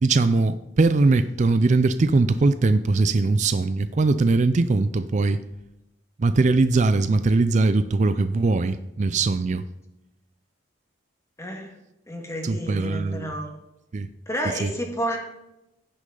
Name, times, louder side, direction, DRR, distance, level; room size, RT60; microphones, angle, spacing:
voice 1, 0.0-5.4 6.2-9.7 12.4-13.3 13.9-14.1 14.6-14.7, right 3 dB, 40° right, 11 dB, 0.4 m, -21 dB
voice 2, 11.4-11.7 12.1-13.5 14.3-15.2, equal, 15° left, 2 dB, 1.7 m, -30 dB
15.5 x 6.3 x 3.8 m, 0.91 s
head